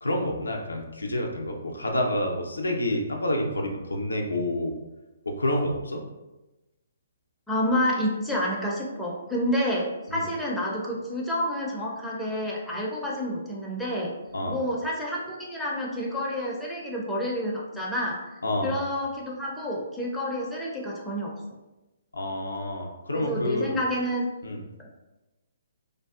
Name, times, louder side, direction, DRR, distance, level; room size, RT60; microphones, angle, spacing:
voice 1, 0.0-4.7 5.2-6.0 10.1-10.3 14.3-14.6 18.4-18.8 22.1-23.8 24.4-24.6, left 1 dB, 75° left, 1 dB, 0.4 m, -28 dB
voice 2, 7.5-14.1 14.5-18.2 18.6-21.3 23.1-24.3 24.8-24.9, equal, ahead, -5 dB, 0.4 m, -29 dB
2.5 x 2.3 x 2.3 m, 1.0 s
figure-of-eight pair, 130°, 0 cm